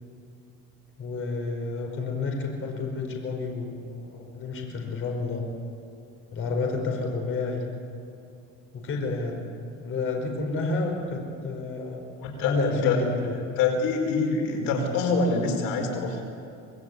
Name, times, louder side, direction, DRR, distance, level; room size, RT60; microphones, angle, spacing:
voice 1, 1.0-5.4 6.3-7.6 8.7-9.4 9.8-12.0 12.4-13.3, left 3 dB, 40° left, 1 dB, 5.2 m, -30 dB
voice 2, 12.2-13.0 13.6-16.2, left 4 dB, 90° left, 2 dB, 5.0 m, -25 dB
25.5 x 20.5 x 9.6 m, 2.5 s
cardioid pair, 145°, 32 cm